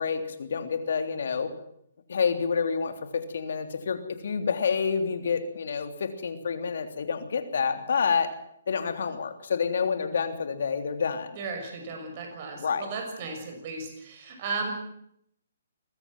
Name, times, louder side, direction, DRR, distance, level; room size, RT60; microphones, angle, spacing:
voice 1, 0.0-1.5 2.1-8.3 8.7-11.3 12.5-12.9, left 6 dB, 65° left, 8 dB, 3.2 m, -28 dB
voice 2, 11.4-14.7, right 4 dB, 40° right, 3 dB, 6.5 m, -35 dB
21.0 x 14.5 x 8.9 m, 0.73 s
hypercardioid pair, 145°, 0 cm